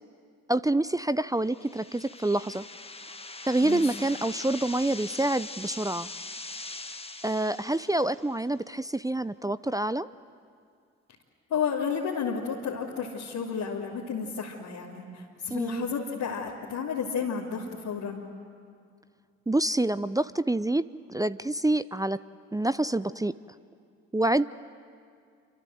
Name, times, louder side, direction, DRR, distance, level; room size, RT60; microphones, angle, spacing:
voice 1, 0.5-2.6 3.5-6.1 7.2-10.1 15.5-15.9 19.5-22.2 22.5-23.4 24.1-24.5, right 2 dB, 10° right, 15 dB, 0.6 m, -27 dB
sound 1, 1.4-8.4, left 2 dB, 15° left, 1.4 m, -42 dB
voice 2, 3.6-3.9 11.5-18.2, left 6 dB, 70° left, -6 dB, 2.9 m, -32 dB
27.5 x 25.5 x 7.8 m, 2.2 s
hypercardioid pair, 40°, 35 cm